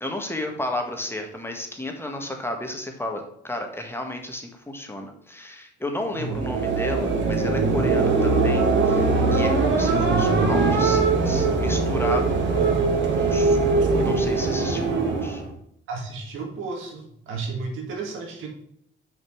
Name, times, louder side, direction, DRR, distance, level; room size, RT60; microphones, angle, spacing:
voice 1, 0.0-12.8 13.1-13.6 14.0-15.4, left 1 dB, 10° left, 3 dB, 1.7 m, -33 dB
sound 1, 6.1-15.5, right 3 dB, 70° right, 1.8 m, -21 dB
voice 2, 15.9-18.5, right 4 dB, 90° right, 2 dB, 2.0 m, -33 dB
6.3 x 5.5 x 6.3 m, 0.73 s
cardioid pair, 90°, 20 cm